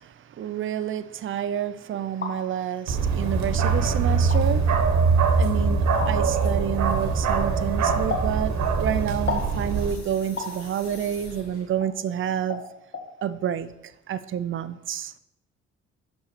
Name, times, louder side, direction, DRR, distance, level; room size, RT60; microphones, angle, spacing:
voice 1, 0.0-4.7 5.4-12.6 13.2-13.7 14.1-15.1, right 9 dB, 40° right, 0.5 m, -29 dB
sound 1, 1.9-2.4 3.3-3.4 4.2-4.4 6.0-6.1 8.1-8.3 9.3-9.5 10.4-10.6 11.8-11.9 12.5-12.7 12.9-13.1, left 4 dB, 40° left, 1.8 m, -31 dB
Bark, 2.9-9.9, right 4 dB, 65° right, 1.2 m, -23 dB
sound 2, 5.4-5.7 6.4-11.8, left 3 dB, 85° left, 3.4 m, -45 dB
5.6 x 5.5 x 6.6 m
cardioid pair, 90°, 30 cm